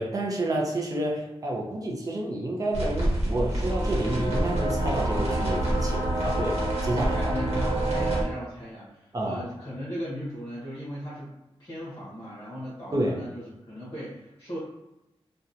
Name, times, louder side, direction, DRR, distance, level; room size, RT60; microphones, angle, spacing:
voice 1, 0.0-7.2 9.1-9.4 12.9-13.2, right 1 dB, 35° right, -1 dB, 0.6 m, -29 dB
sound 1, 2.7-8.2, right 1 dB, 80° right, 1.0 m, -26 dB
voice 2, 7.0-11.3 11.6-14.6, equal, 30° left, -8 dB, 0.9 m, -37 dB
2.8 x 2.2 x 2.5 m, 0.94 s
wide cardioid pair, 145°, 10 cm